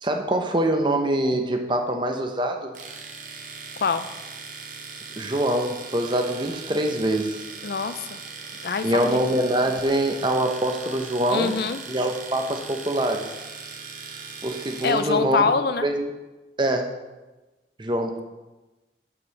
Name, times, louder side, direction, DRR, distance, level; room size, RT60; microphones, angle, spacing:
voice 1, 0.0-2.7 5.2-7.4 8.8-11.5 11.9-13.3 14.4-15.5 15.8-16.1 16.6-16.9 17.8-18.2, right 1 dB, 25° right, 4 dB, 0.8 m, -24 dB
Domestic sounds home sounds, 2.7-15.1, right 5 dB, 50° right, 1.1 m, -39 dB
voice 2, 7.6-8.2 8.6-9.2 11.3-11.8 14.8-15.9, left 5 dB, 60° left, 12 dB, 0.4 m, -24 dB
6.8 x 5.4 x 6.4 m, 1.1 s
head